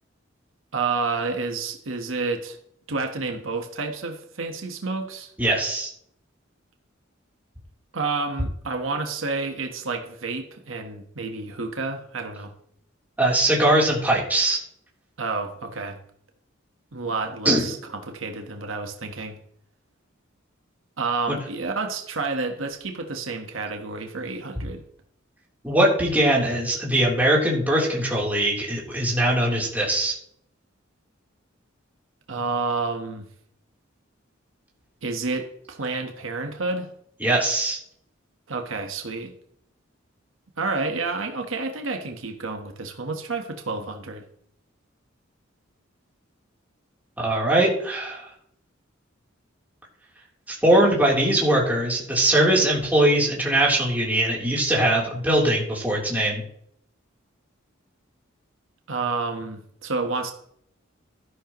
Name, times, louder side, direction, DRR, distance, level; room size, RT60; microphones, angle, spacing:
voice 1, 0.7-2.6 2.9-5.3 7.9-12.5 15.2-16.0 16.9-19.4 21.0-24.8 32.3-33.3 35.0-36.9 38.5-39.3 40.6-44.2 58.9-60.3, right 3 dB, 75° right, 4 dB, 1.4 m, -29 dB
voice 2, 5.4-5.9 13.2-14.6 17.4-17.7 25.6-30.1 37.2-37.8 47.2-48.3 50.5-56.4, right 1 dB, 10° right, -4 dB, 3.6 m, -21 dB
13.0 x 11.0 x 3.1 m, 0.67 s
head